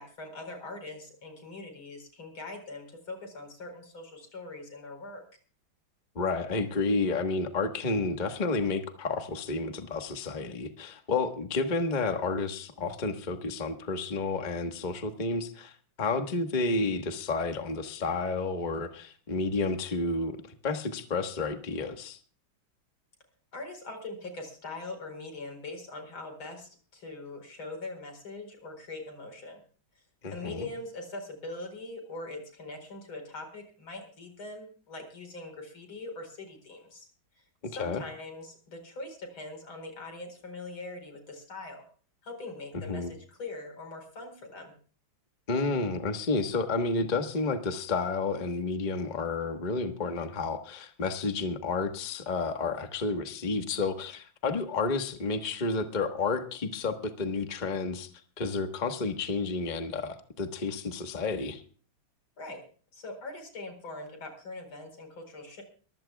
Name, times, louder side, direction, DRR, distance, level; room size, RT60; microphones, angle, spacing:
voice 1, 0.0-5.2 23.5-29.6 30.3-37.1 37.7-41.8 42.2-44.7 62.4-62.6 62.9-65.6, left 2 dB, 85° left, 5 dB, 5.1 m, -42 dB
voice 2, 6.1-15.7 16.0-22.2 30.2-30.7 37.6-38.0 42.7-43.1 45.5-58.1 58.4-61.6, left 3 dB, 25° left, 6 dB, 1.2 m, -31 dB
23.5 x 15.5 x 2.3 m, 0.42 s
omnidirectional pair, 2.2 m